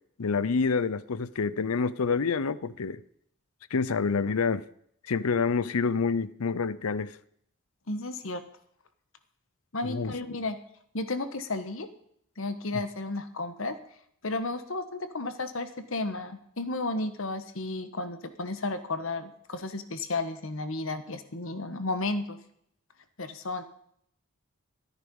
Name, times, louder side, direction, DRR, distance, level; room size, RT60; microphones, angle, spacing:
voice 1, 0.2-3.0 3.7-4.6 5.1-7.2 9.8-10.1, left 5 dB, 85° left, 0.6 m, -27 dB
voice 2, 7.9-8.4 9.7-10.6 10.9-11.9 12.4-13.8 14.2-22.4 23.2-23.6, left 2 dB, 65° left, 1.3 m, -33 dB
14.0 x 9.8 x 5.4 m
head